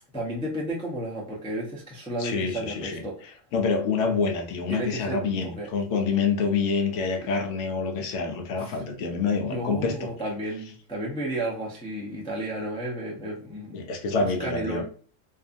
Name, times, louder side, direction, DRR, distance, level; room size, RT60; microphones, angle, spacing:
voice 1, 0.1-3.2 4.7-5.7 7.2-7.3 8.6-8.8 9.5-13.8 14.1-14.8, right 1 dB, 10° left, -4 dB, 0.3 m, -33 dB
voice 2, 2.2-10.1 13.7-14.8, left 5 dB, 70° left, 4 dB, 0.8 m, -27 dB
2.6 x 2.4 x 2.5 m, 0.42 s
omnidirectional pair, 1.3 m